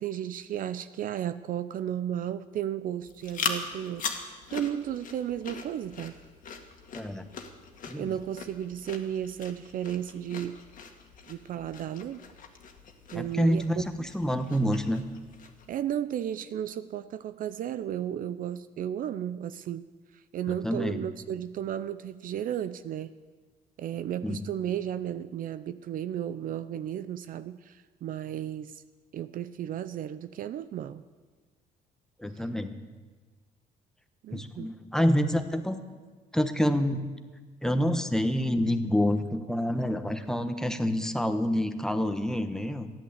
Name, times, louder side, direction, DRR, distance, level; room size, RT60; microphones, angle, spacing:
voice 1, 0.0-6.1 8.0-10.6 11.3-12.2 13.1-14.1 15.7-19.8 20.3-23.1 23.8-28.8 29.1-31.0 32.3-32.5 34.2-34.7, right 10 dB, 55° right, 13 dB, 0.5 m, -34 dB
sound 1, 3.0-15.8, left 5 dB, 50° left, 1.8 m, -41 dB
voice 2, 6.9-7.3 7.8-8.1 13.1-15.1 20.5-21.0 24.2-24.5 32.2-32.8 34.3-35.8 36.3-37.0 37.6-42.9, equal, 5° left, 9 dB, 1.1 m, -27 dB
14.0 x 11.0 x 8.1 m, 1.4 s
cardioid pair, 110°, 17 cm